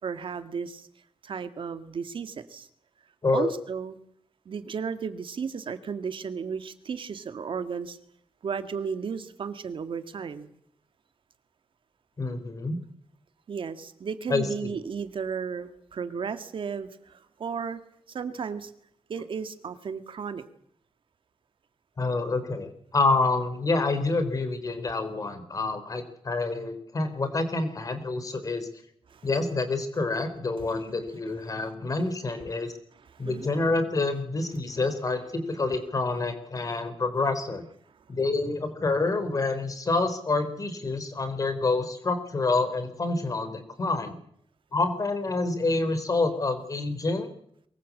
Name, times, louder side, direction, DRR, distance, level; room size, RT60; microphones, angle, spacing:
voice 1, 0.0-0.9 1.2-2.7 3.3-4.0 4.5-8.0 8.4-10.5 13.5-17.8 18.1-18.7 19.1-20.4 29.1-29.3 33.1-33.5, right 6 dB, 70° right, 9 dB, 2.0 m, -34 dB
voice 2, 12.2-12.8 14.3-14.8 22.0-28.7 29.2-32.7 33.2-37.6 38.1-44.2 44.7-47.3, left 3 dB, 40° left, 10 dB, 4.0 m, -27 dB
23.5 x 20.5 x 8.5 m, 0.70 s
wide cardioid pair, 140°, 9 cm